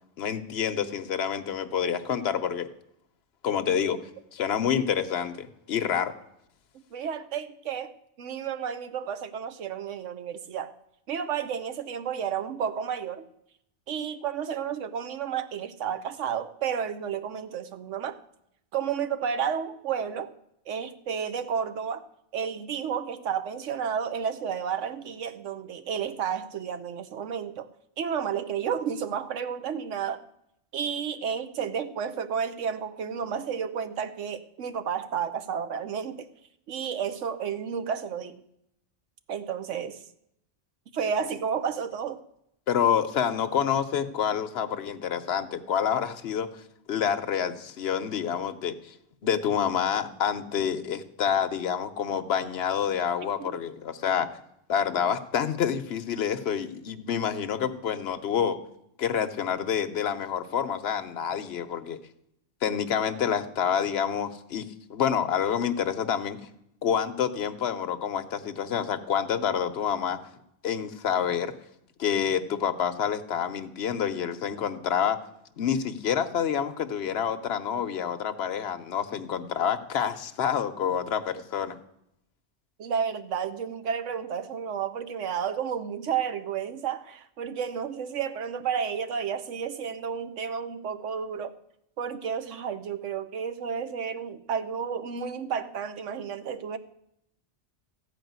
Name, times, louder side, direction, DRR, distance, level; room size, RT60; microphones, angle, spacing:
voice 1, 0.2-2.7 3.4-4.0 4.3-6.1 42.7-46.5 46.9-48.9 49.2-54.3 54.7-58.6 59.0-62.0 62.6-64.6 64.9-66.4 66.8-70.2 70.6-71.5 72.0-75.2 75.6-81.7, left 8 dB, 60° left, 1.0 m, -28 dB
voice 2, 6.9-10.7 11.1-13.3 13.9-18.2 18.7-20.3 20.7-22.1 22.3-27.7 28.0-30.3 30.7-36.3 36.7-38.4 39.3-40.0 40.9-42.2 53.4-53.5 82.8-91.6 92.0-96.8, right 7 dB, 85° right, 1.1 m, -31 dB
14.5 x 4.9 x 9.3 m
omnidirectional pair, 1.2 m